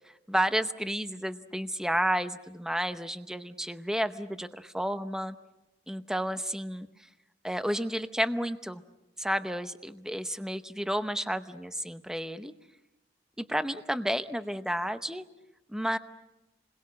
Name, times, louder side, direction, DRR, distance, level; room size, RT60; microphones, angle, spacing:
voice 1, 0.3-5.4 5.9-6.9 7.4-8.8 9.2-12.5 13.4-15.2 15.7-16.0, equal, 5° right, 10 dB, 0.8 m, -31 dB
29.0 x 21.5 x 7.6 m, 1.0 s
head